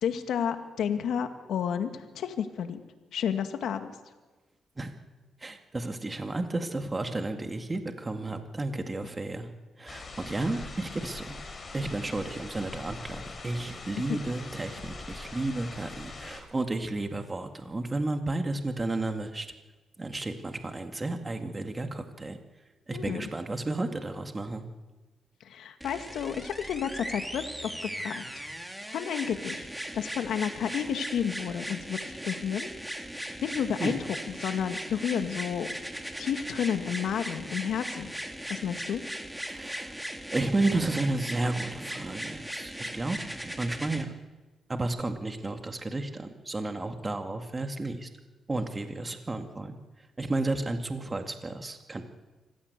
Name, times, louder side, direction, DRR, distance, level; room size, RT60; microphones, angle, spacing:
voice 1, 0.0-2.8 3.1-3.9 14.1-14.2 22.9-23.3 25.4-28.4 28.9-29.7 29.9-32.7 33.2-35.7 36.2-38.1 38.5-39.0, left 8 dB, 80° left, 7 dB, 2.0 m, -31 dB
voice 2, 5.4-9.5 9.8-11.4 11.7-19.5 20.0-22.4 22.9-24.6 33.8-33.9 39.5-40.0 40.3-44.2 44.7-48.1 48.5-49.8 50.2-52.1, right 2 dB, 25° right, 6 dB, 2.1 m, -32 dB
sound 1, 9.9-16.4, left 3 dB, 35° left, 5.1 m, -43 dB
sound 2, 25.8-44.0 45.0-45.1, right 1 dB, 5° right, 2.8 m, -38 dB
25.0 x 16.0 x 8.3 m, 1.2 s
cardioid pair, 80°, 0 cm